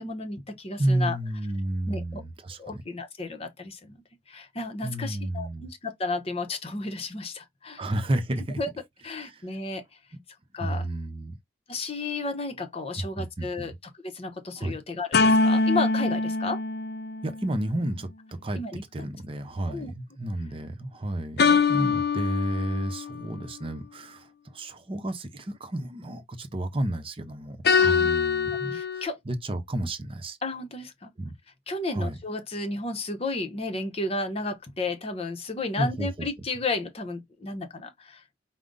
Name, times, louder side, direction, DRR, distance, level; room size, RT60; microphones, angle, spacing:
voice 1, 0.0-1.2 1.9-2.2 2.6-4.0 4.3-7.8 8.6-8.7 9.0-9.8 10.5-10.9 11.7-13.7 14.0-16.6 18.6-19.1 19.7-19.9 27.8-28.1 28.7-29.2 30.4-31.1 31.7-38.2, left 3 dB, 35° left, 0.8 m, -33 dB
voice 2, 0.8-2.8 4.8-5.7 7.8-8.6 9.2-9.5 10.1-10.2 10.6-11.3 13.0-13.8 14.6-14.8 17.2-18.1 18.4-18.6 18.9-27.6 27.8-30.4 31.2-31.3 31.9-32.2 35.8-36.1, right 1 dB, 30° right, 0.8 m, -31 dB
sound 1, 15.1-17.7 21.4-23.2 27.6-29.0, left 4 dB, 60° left, 0.5 m, -23 dB
4.9 x 2.1 x 3.8 m
head